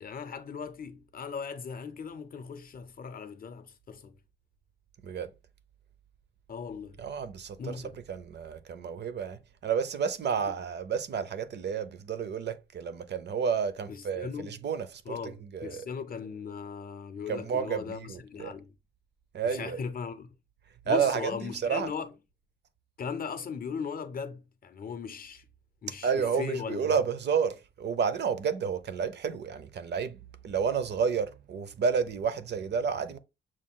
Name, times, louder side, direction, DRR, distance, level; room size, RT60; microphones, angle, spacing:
voice 1, 0.0-4.1 6.5-7.0 7.6-8.0 13.9-14.6 15.1-18.7 19.4-20.3 20.8-22.1 23.0-25.4 25.8-26.9, left 6 dB, 50° left, 0.6 m, -38 dB
voice 2, 7.0-7.8 8.1-15.9 17.3-18.6 19.3-19.8 20.9-21.9 26.0-30.2 30.4-33.2, right 6 dB, 60° right, 0.5 m, -31 dB
6.2 x 2.3 x 3.6 m
wide cardioid pair, 160°, 20 cm